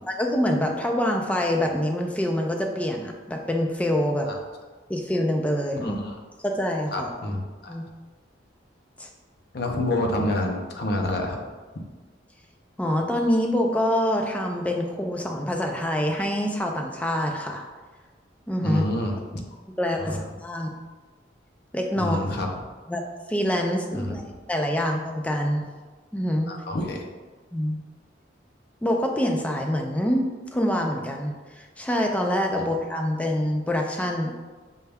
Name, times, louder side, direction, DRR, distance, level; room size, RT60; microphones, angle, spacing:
voice 1, 0.1-4.3 4.9-6.0 6.4-7.1 7.7-7.8 9.0-9.1 12.8-17.6 18.5-18.8 19.8-20.7 21.7-22.4 22.9-23.0 23.3-24.2 24.5-25.7 26.1-26.5 27.5-27.8 28.8-30.3 30.5-34.3, left 1 dB, 5° left, 1 dB, 0.4 m, -25 dB
voice 2, 5.8-6.2 6.9-7.7 9.5-11.4 18.6-19.1 20.0-20.2 22.0-22.5 23.9-24.2 26.5-27.0 32.5-32.7, left 1 dB, 55° left, 2 dB, 0.6 m, -28 dB
5.4 x 2.3 x 3.3 m, 1.3 s
head